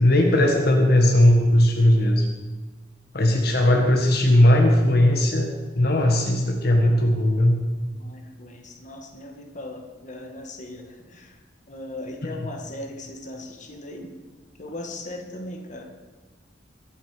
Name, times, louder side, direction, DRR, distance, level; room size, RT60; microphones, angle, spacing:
voice 1, 0.0-2.3 3.1-5.5 5.8-7.6, left 1 dB, 60° left, 2 dB, 1.7 m, -18 dB
voice 2, 7.9-11.4 11.7-14.1 14.6-15.8, left 1 dB, 45° left, 2 dB, 1.8 m, -38 dB
22.5 x 8.3 x 5.1 m, 1.3 s
head